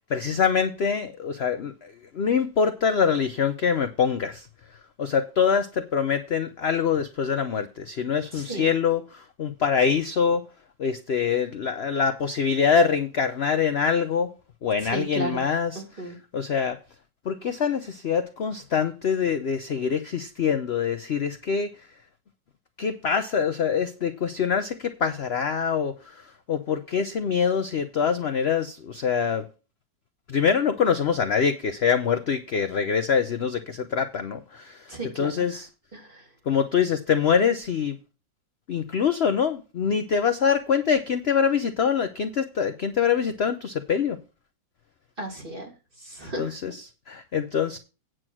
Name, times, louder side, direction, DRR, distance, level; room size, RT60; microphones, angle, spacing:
voice 1, 0.1-4.5 5.0-10.5 10.8-14.3 14.6-16.8 17.2-21.7 22.8-29.5 30.3-35.7 36.5-38.0 38.7-44.2 46.4-47.8, left 6 dB, 60° left, 0.7 m, -25 dB
voice 2, 8.3-8.7 14.9-15.4 15.8-16.2 34.9-35.3 35.9-36.2 45.2-45.7 46.0-46.5, right 2 dB, 30° right, 2.8 m, -34 dB
9.4 x 6.3 x 6.1 m
omnidirectional pair, 2.0 m